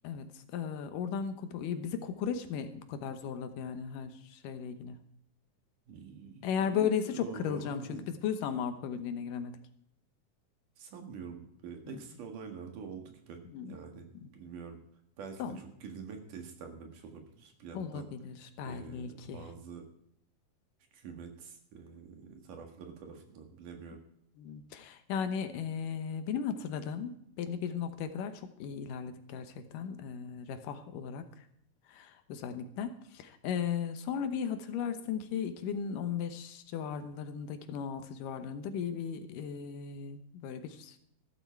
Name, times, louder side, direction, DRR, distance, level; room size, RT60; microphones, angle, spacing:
voice 1, 0.0-5.0 6.4-9.5 11.9-12.0 13.5-13.8 14.2-14.3 15.4-15.6 17.7-19.5 24.4-31.5 31.9-41.0, left 7 dB, 90° left, 9 dB, 2.7 m, -36 dB
voice 2, 5.9-8.1 10.8-13.4 13.7-14.0 14.3-14.8 15.2-18.1 18.6-19.1 19.3-19.8 20.9-24.0, right 6 dB, 75° right, 4 dB, 3.3 m, -46 dB
14.5 x 12.5 x 4.6 m, 0.71 s
omnidirectional pair, 3.7 m